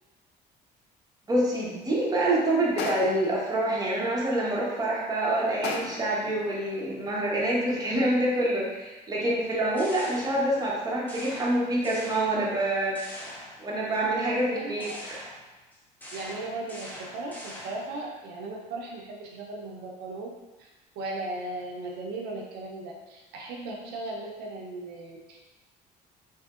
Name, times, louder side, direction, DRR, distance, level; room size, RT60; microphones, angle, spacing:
voice 1, 1.3-13.0 13.6-15.2, right 1 dB, 20° right, -5 dB, 0.9 m, -26 dB
sound 1, 2.8-3.3 5.6-6.1, left 4 dB, 85° left, 0.5 m, -34 dB
sound 2, 9.5-10.8 11.1-12.6 13.0-14.0 14.8-18.0, left 1 dB, 10° left, 0.7 m, -43 dB
voice 2, 14.5-15.0 16.1-20.3 20.6-20.7 21.0-25.5, right 2 dB, 80° right, -1 dB, 0.5 m, -37 dB
3.5 x 2.7 x 2.4 m, 1.1 s
cardioid pair, 110°, 17 cm